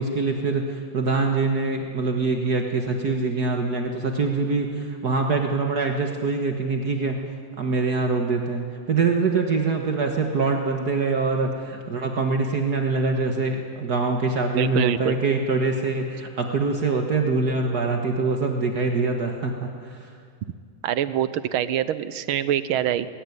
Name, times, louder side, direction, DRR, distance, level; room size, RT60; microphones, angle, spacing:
voice 1, 0.0-7.2 7.6-20.1, right 3 dB, 55° right, 3 dB, 1.9 m, -24 dB
voice 2, 14.6-15.2 20.8-23.1, right 11 dB, 90° right, 14 dB, 1.7 m, -24 dB
19.5 x 18.0 x 9.5 m, 2.1 s
omnidirectional pair, 2.2 m